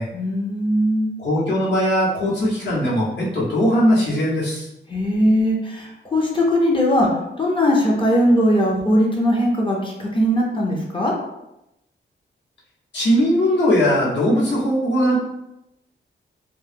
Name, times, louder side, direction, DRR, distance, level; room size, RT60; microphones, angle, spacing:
voice 1, 0.1-1.1 4.9-7.1 7.4-11.1, equal, 25° left, -3 dB, 0.5 m, -19 dB
voice 2, 1.2-4.7 12.9-15.2, equal, 65° left, -6 dB, 0.9 m, -19 dB
2.2 x 2.0 x 3.2 m, 0.87 s
wide cardioid pair, 125°, 20 cm